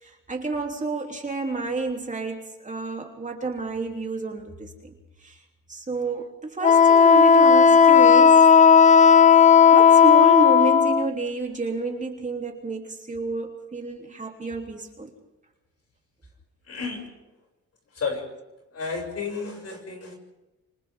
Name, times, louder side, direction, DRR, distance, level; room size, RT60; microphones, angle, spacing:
voice 1, 0.0-4.9 5.2-5.4 5.7-8.4 9.7-15.1, right 3 dB, 25° right, 1 dB, 3.3 m, -30 dB
Wind instrument woodwind instrument, 6.6-11.1, left 7 dB, 25° left, 0.6 m, -14 dB
voice 2, 16.7-17.0 17.9-18.3 18.7-20.1, left 5 dB, 55° left, 1 dB, 7.2 m, -31 dB
27.0 x 26.0 x 3.8 m, 1.0 s
cardioid pair, 90°, 30 cm